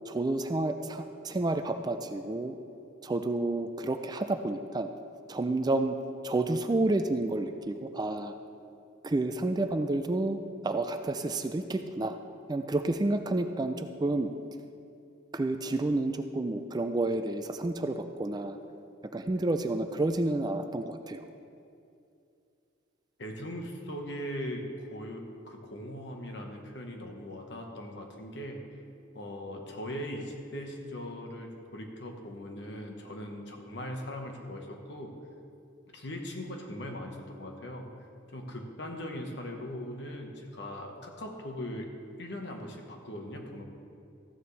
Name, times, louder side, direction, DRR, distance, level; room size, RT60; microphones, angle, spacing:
voice 1, 0.1-2.5 3.0-4.9 5.3-6.0 6.2-8.3 9.0-10.4 10.6-12.2 12.5-14.3 15.3-18.6 19.1-21.2, right 2 dB, 20° right, 7 dB, 0.4 m, -30 dB
voice 2, 23.2-28.8 29.1-35.1 35.9-37.9 38.3-41.9 42.2-43.6, equal, 60° left, 2 dB, 1.2 m, -40 dB
14.0 x 9.6 x 3.3 m, 2.6 s
head